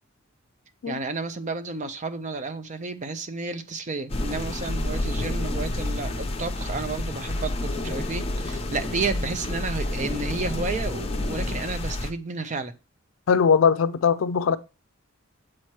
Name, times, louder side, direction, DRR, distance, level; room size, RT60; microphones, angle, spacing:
voice 1, 0.9-12.7, right 3 dB, 35° right, 0.5 m, -31 dB
sound 1, 4.1-12.1, left 1 dB, 30° left, 0.7 m, -29 dB
voice 2, 13.3-14.6, left 6 dB, 70° left, 0.4 m, -20 dB
7.5 x 3.0 x 4.5 m
head